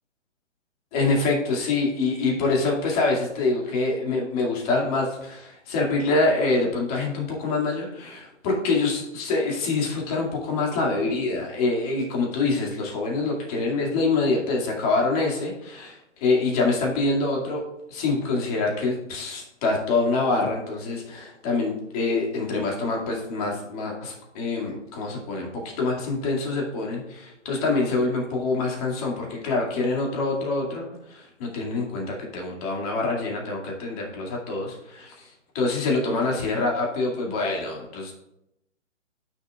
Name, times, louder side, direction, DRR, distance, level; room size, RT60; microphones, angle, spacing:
voice 1, 0.9-17.6 17.9-35.3 35.5-38.1, left 3 dB, 30° left, -1 dB, 2.3 m, -25 dB
14.0 x 6.5 x 2.4 m, 0.85 s
hypercardioid pair, 150°, 38 cm